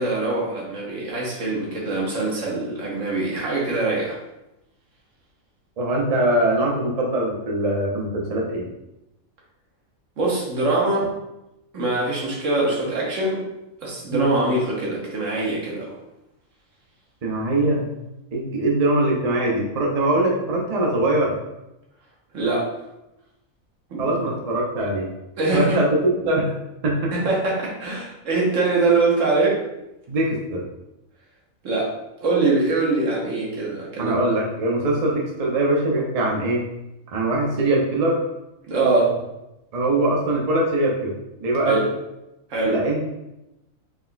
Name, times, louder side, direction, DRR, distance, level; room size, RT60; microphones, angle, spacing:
voice 1, 0.0-4.2 10.2-11.1 11.7-13.4 13.8-15.9 22.3-22.7 23.9-24.2 25.4-25.8 27.1-29.6 31.6-31.9 32.2-34.2 38.7-39.1 41.7-41.9 42.5-42.8, right 3 dB, 65° right, -4 dB, 1.3 m, -23 dB
voice 2, 5.8-8.7 14.1-14.4 17.2-17.9 18.3-21.3 24.0-25.1 25.5-25.9 26.2-26.5 26.8-27.1 30.1-30.6 34.0-36.7 37.1-38.2 39.7-41.1 41.4-41.8 42.7-43.1, right 1 dB, 45° right, -2 dB, 0.5 m, -22 dB
4.3 x 3.6 x 2.2 m, 0.92 s
omnidirectional pair, 1.4 m